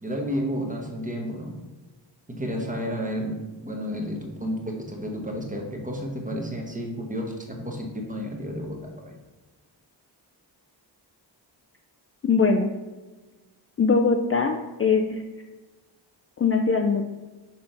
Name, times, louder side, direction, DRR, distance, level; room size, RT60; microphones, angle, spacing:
voice 1, 0.0-1.6 2.3-3.4 3.6-9.2, equal, 20° right, 1 dB, 1.0 m, -31 dB
voice 2, 12.2-12.7 13.8-15.2 16.4-17.0, left 4 dB, 35° left, 3 dB, 0.4 m, -21 dB
5.9 x 5.8 x 3.8 m, 1.2 s
wide cardioid pair, 175°, 43 cm